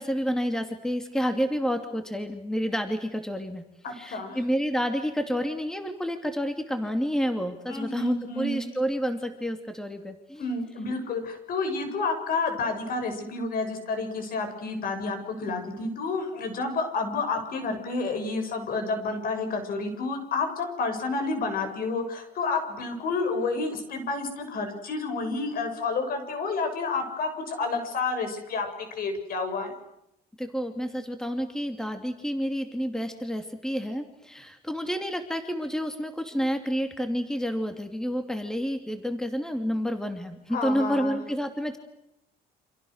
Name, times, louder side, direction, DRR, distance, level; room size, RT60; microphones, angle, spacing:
voice 1, 0.0-3.6 3.9-10.5 30.4-41.8, equal, 5° left, 6 dB, 2.6 m, -29 dB
voice 2, 3.8-4.4 7.7-8.7 10.4-29.7 40.5-41.2, left 3 dB, 60° left, 7 dB, 6.8 m, -30 dB
29.0 x 27.0 x 6.5 m, 0.85 s
cardioid pair, 110°, 17 cm